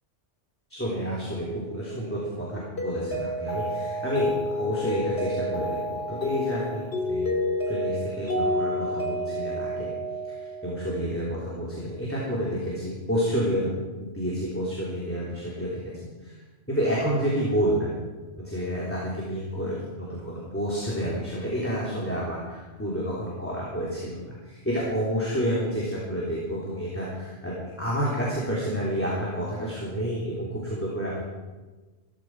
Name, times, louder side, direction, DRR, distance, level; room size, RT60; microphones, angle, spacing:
voice 1, 0.7-7.4 7.7-9.9 10.2-15.8 16.2-16.4 16.7-17.9 18.4-31.2, equal, 10° left, -6 dB, 3.4 m, -29 dB
Mallet percussion, 2.8-10.9, left 1 dB, 60° left, 2.7 m, -29 dB
17.0 x 14.5 x 4.9 m, 1.3 s
omnidirectional pair, 1.2 m